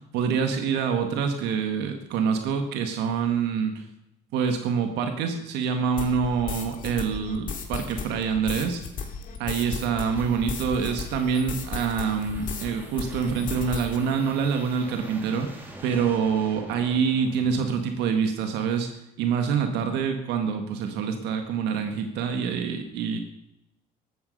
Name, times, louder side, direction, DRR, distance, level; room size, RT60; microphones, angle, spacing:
voice 1, 0.1-3.8 4.3-8.8 9.4-15.5 15.8-18.9 19.2-23.2, right 6 dB, 90° right, 5 dB, 1.7 m, -26 dB
sound 1, 6.0-12.7 13.0-14.0, left 5 dB, 50° left, 2.8 m, -35 dB
sound 2, 9.7-18.3, right 1 dB, 10° right, 3.5 m, -45 dB
14.5 x 13.0 x 5.4 m, 0.87 s
cardioid pair, 110°, 17 cm